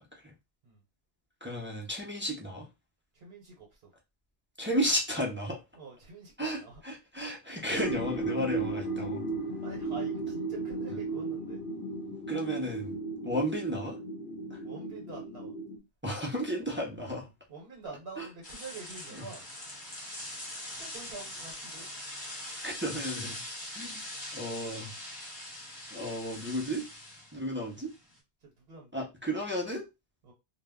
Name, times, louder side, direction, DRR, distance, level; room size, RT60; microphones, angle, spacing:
voice 1, 1.4-2.7 4.6-5.6 6.4-9.2 12.3-13.0 13.2-14.0 14.5-14.6 16.0-17.3 18.2-18.3 19.1-19.2 22.6-23.4 23.7-24.0 24.3-24.9 25.9-26.9 27.3-27.9 28.9-29.9, equal, 15° right, -2 dB, 0.4 m, -33 dB
voice 2, 3.1-3.8 5.7-6.8 9.6-11.6 14.6-15.5 17.5-19.4 20.7-21.9 28.4-29.1 30.2-30.3, right 4 dB, 65° right, -1 dB, 1.0 m, -46 dB
sound 1, 7.7-15.8, right 3 dB, 65° left, 0.7 m, -35 dB
sound 2, 18.4-28.2, left 1 dB, 20° left, 0.9 m, -42 dB
2.1 x 2.0 x 3.5 m, 0.24 s
omnidirectional pair, 1.1 m